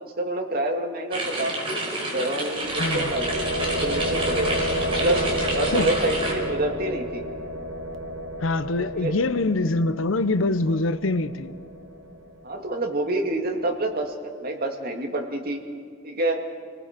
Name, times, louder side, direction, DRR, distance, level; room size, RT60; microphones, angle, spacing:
voice 1, 0.0-1.5 2.0-4.6 4.9-5.2 5.5-7.2 8.8-9.2 12.4-15.6 16.0-16.5, right 1 dB, 50° right, 2.1 m, -27 dB
sound 1, 1.1-6.3, right 1 dB, 30° right, 4.4 m, -29 dB
sound 2, 2.6-12.4, equal, 75° right, 1.2 m, -31 dB
voice 2, 2.8-3.1 5.7-5.9 8.4-11.5, left 2 dB, 80° left, 0.8 m, -24 dB
29.0 x 19.0 x 5.1 m
head